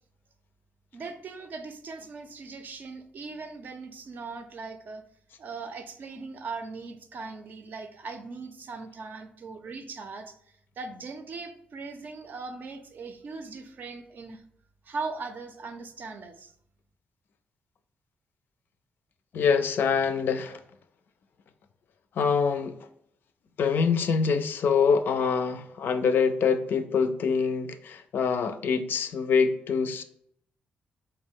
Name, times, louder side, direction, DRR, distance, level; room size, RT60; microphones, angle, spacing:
voice 1, 0.9-5.0 5.4-10.4 10.8-14.4 14.8-16.5, right 4 dB, 60° right, 0.5 m, -39 dB
voice 2, 19.3-20.6 22.2-22.8 23.6-30.0, left 5 dB, 70° left, 0.4 m, -25 dB
4.3 x 2.1 x 3.6 m
cardioid pair, 85°, 4 cm